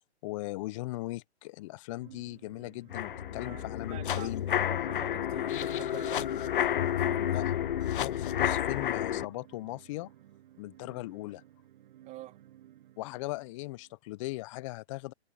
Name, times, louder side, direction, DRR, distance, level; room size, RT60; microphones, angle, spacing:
voice 1, 0.2-4.4 7.3-7.5 8.0-10.1 10.6-11.4 13.0-15.1, left 20 dB, 30° left, 1.1 m, -38 dB
sound 1, 2.0-14.0, right 13 dB, 45° right, 7.9 m, -56 dB
sound 2, 2.9-9.3, left 10 dB, 50° left, 0.4 m, -30 dB
voice 2, 3.4-7.4 12.1-12.4, right 16 dB, 20° right, 3.8 m, -48 dB
figure-of-eight pair, 135°, 34 cm